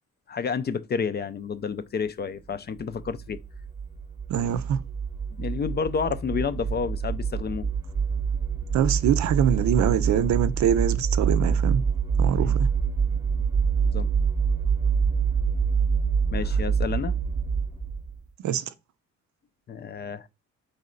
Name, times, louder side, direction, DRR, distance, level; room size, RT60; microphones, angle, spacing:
voice 1, 0.3-3.4 5.4-7.7 12.3-12.6 13.8-14.1 16.3-17.2 19.7-20.3, left 6 dB, 35° left, 0.4 m, -30 dB
sound 1, 2.9-18.2, right 6 dB, 15° right, 0.6 m, -26 dB
voice 2, 4.3-4.8 8.7-11.8 12.2-12.7 18.4-18.6, right 9 dB, 70° right, 0.5 m, -24 dB
4.1 x 3.2 x 3.8 m
cardioid pair, 90°, 30 cm